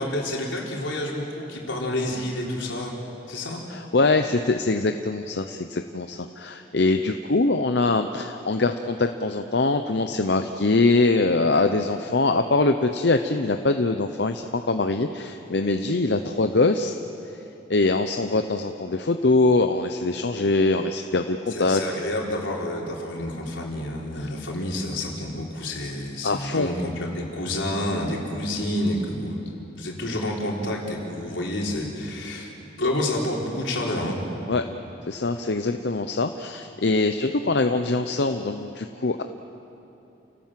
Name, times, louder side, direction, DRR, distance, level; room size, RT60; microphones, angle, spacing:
voice 1, 0.0-2.9 3.3-3.6 21.5-29.4 29.7-32.5 32.8-34.2, left 1 dB, 85° left, -2 dB, 4.2 m, -29 dB
voice 2, 3.7-16.9 17.7-21.8 24.2-24.3 26.2-26.7 34.5-34.6 35.1-39.2, left 3 dB, 60° left, 7 dB, 0.8 m, -23 dB
29.0 x 18.0 x 7.6 m, 2.9 s
head